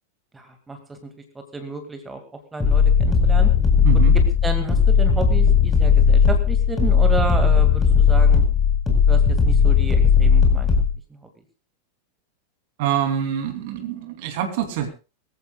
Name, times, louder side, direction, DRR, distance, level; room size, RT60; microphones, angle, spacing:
voice 1, 0.3-2.2 2.5-3.5 4.4-8.4 9.1-10.7 11.1-11.3, right 3 dB, 10° right, 5 dB, 2.1 m, -32 dB
sound 1, 2.6-10.9, left 6 dB, 15° left, 4.4 m, -16 dB
voice 2, 3.8-4.2 12.8-14.9, right 9 dB, 50° right, 6 dB, 2.9 m, -25 dB
23.0 x 14.5 x 2.3 m, 0.31 s
figure-of-eight pair, 90°, 0 cm